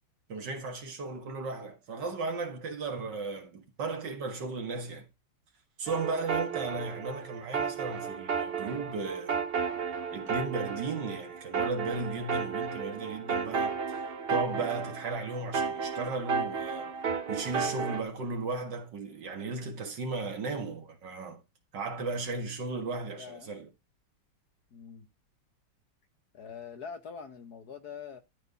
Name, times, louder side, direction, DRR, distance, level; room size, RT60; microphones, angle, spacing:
voice 1, 0.3-5.1 5.8-9.4 10.1-14.0 14.3-17.0 17.3-21.4 21.7-23.7, right 3 dB, 60° right, 2.3 m, -35 dB
sound 1, 5.9-18.0, right 5 dB, 80° right, 0.5 m, -33 dB
voice 2, 23.1-23.5 24.7-25.1 26.3-28.2, left 6 dB, 55° left, 1.4 m, -44 dB
13.0 x 4.6 x 4.0 m
omnidirectional pair, 2.3 m